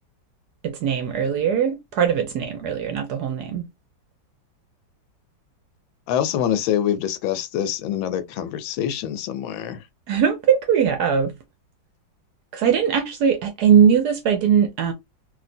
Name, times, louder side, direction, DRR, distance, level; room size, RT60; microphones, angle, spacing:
voice 1, 0.6-3.7 10.1-11.3 12.5-14.9, right 8 dB, 70° right, 1.0 m, -20 dB
voice 2, 6.1-9.8, left 10 dB, 85° left, 1.4 m, -25 dB
3.2 x 2.8 x 2.5 m
omnidirectional pair, 2.1 m